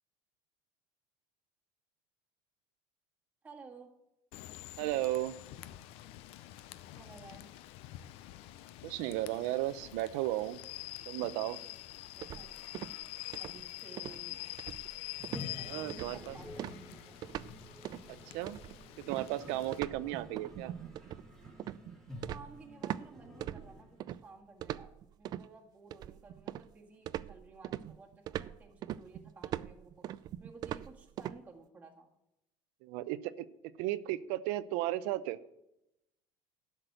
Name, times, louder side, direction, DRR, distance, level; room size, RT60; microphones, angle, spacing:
voice 1, 3.4-3.9 6.9-7.5 12.1-12.6 13.3-14.4 15.5-17.2 20.1-20.5 22.3-24.9 25.2-32.1, right 4 dB, 15° right, 0 dB, 1.6 m, -55 dB
Rain / Train, 4.3-19.8, left 16 dB, 65° left, 0.6 m, -47 dB
voice 2, 4.8-5.4 8.8-10.6 11.1-11.6 15.6-16.4 18.3-18.6 19.0-20.7 32.8-33.5 33.8-35.4, right 15 dB, 85° right, 15 dB, 0.6 m, -34 dB
sound 1, 12.2-13.0 13.3-13.6 14.0-14.2 14.6-15.0 15.2-15.5 15.9-16.2 16.6-17.5 17.8-18.1 18.5-23.1 23.4-24.2 24.6-25.5 25.9-26.7 27.1-31.4, right 12 dB, 40° right, 0.3 m, -41 dB
Toilet flush, 15.1-24.2, left 1 dB, 5° left, 2.2 m, -50 dB
12.0 x 6.0 x 7.8 m, 0.87 s
cardioid pair, 160°, 11 cm